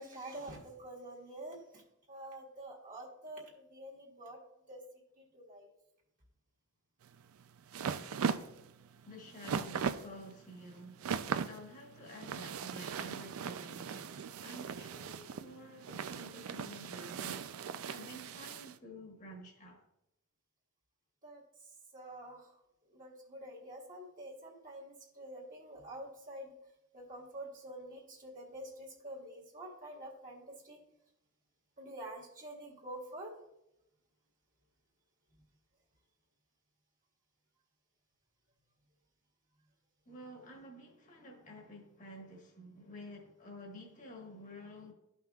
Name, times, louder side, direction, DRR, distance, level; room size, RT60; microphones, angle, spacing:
voice 1, 0.0-1.8 2.1-4.4 4.7-4.8 5.1-5.7 21.2-21.4 21.9-22.5 22.9-26.5 26.9-30.8 31.8-33.3, right 1 dB, 40° right, 1.6 m, -47 dB
sound 1, 7.0-18.8, right 6 dB, 80° right, 0.4 m, -39 dB
voice 2, 9.0-11.0 11.4-19.8 40.1-44.9, equal, 40° left, 1.4 m, -50 dB
13.0 x 5.6 x 2.3 m
head